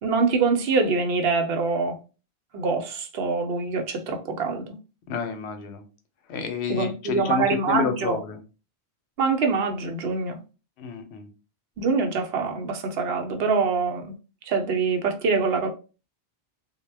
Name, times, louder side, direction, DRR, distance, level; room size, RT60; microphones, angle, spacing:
voice 1, 0.0-2.0 2.5-4.7 6.7-8.2 9.2-10.4 11.8-14.1 14.5-15.7, right 4 dB, 70° right, 0.8 m, -24 dB
voice 2, 5.1-5.8 6.3-8.4 10.8-11.3, left 6 dB, 85° left, 0.8 m, -29 dB
2.1 x 2.1 x 3.2 m
omnidirectional pair, 1.1 m